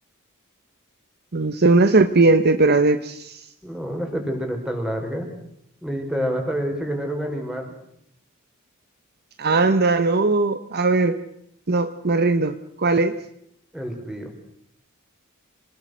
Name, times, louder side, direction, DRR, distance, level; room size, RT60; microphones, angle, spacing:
voice 1, 1.3-3.4 9.4-11.2 11.7-13.1, right 3 dB, 45° right, 10 dB, 1.0 m, -19 dB
voice 2, 3.6-5.3 5.8-7.7 13.7-14.3, equal, 5° right, 3 dB, 4.7 m, -28 dB
26.5 x 19.5 x 6.3 m, 0.74 s
head